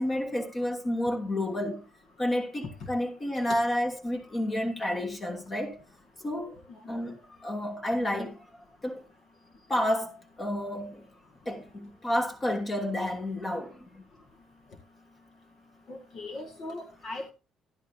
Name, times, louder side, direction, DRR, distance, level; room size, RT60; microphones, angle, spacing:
voice 1, 0.0-1.8 2.2-5.8 6.2-6.6 6.9-8.4 8.8-9.0 9.7-11.0 11.5-14.0, left 1 dB, 30° left, 2.7 m, -30 dB
voice 2, 15.9-17.3, left 2 dB, 55° left, 1.9 m, -39 dB
12.5 x 11.0 x 2.8 m
cardioid pair, 100°, 0 cm